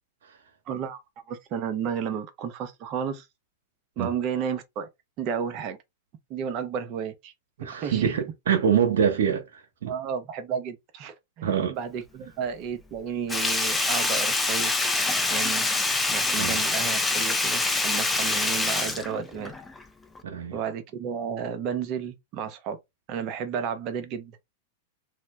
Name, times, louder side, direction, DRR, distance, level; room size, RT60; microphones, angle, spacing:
voice 1, 0.7-1.0 1.3-3.2 4.0-4.9 5.2-5.8 6.3-7.3 7.8-8.2 9.9-14.7 15.3-15.7 16.1-19.5 20.5-22.8 23.1-24.4, right 7 dB, 45° right, 0.7 m, -32 dB
voice 2, 7.6-9.4 9.8-9.9 11.4-11.8 16.4-16.6 20.2-20.6, right 8 dB, 75° right, 0.9 m, -24 dB
Sink (filling or washing), 13.3-19.8 20.2-20.3, left 2 dB, 10° left, 0.5 m, -25 dB
2.8 x 2.1 x 3.3 m
hypercardioid pair, 115°, 0 cm